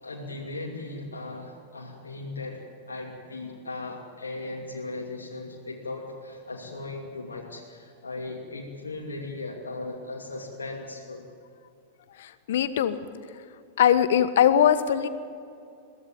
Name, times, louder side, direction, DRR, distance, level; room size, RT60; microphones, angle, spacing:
voice 1, 0.0-2.6 2.9-11.3, left 2 dB, 85° left, -2 dB, 2.7 m, -37 dB
voice 2, 12.2-13.0 13.8-15.1, left 9 dB, 65° left, 13 dB, 1.3 m, -21 dB
22.5 x 17.0 x 8.9 m, 2.5 s
figure-of-eight pair, 95°, 0 cm